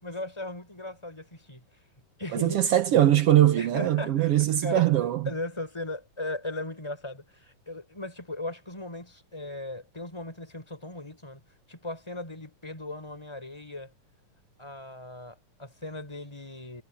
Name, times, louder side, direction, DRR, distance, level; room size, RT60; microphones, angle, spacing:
voice 1, 0.0-1.6 2.2-2.6 3.6-4.3 4.6-4.8 5.3-11.4 11.7-13.9 14.6-16.8, left 2 dB, 10° left, 5.9 m, -37 dB
voice 2, 2.3-5.3, right 12 dB, 65° right, 1.5 m, -22 dB
omnidirectional pair, 3.8 m